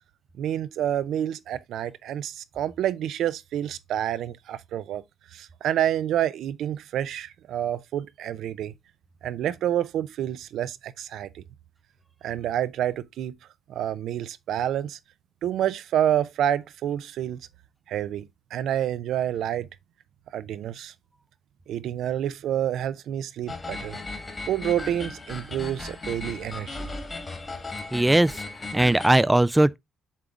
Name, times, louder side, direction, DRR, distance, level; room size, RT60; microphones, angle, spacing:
voice 1, 0.4-5.0 5.3-8.7 9.2-11.4 12.2-13.3 13.7-15.0 15.4-17.4 17.9-19.7 20.3-20.9 21.7-24.0 24.5-26.9, right 11 dB, 75° right, 0.5 m, -28 dB
sound 1, 23.5-29.2, left 3 dB, 30° left, 1.7 m, -36 dB
voice 2, 27.9-28.4 28.7-29.8, right 1 dB, 10° right, 0.3 m, -19 dB
7.3 x 3.5 x 3.6 m
cardioid pair, 90°, 0 cm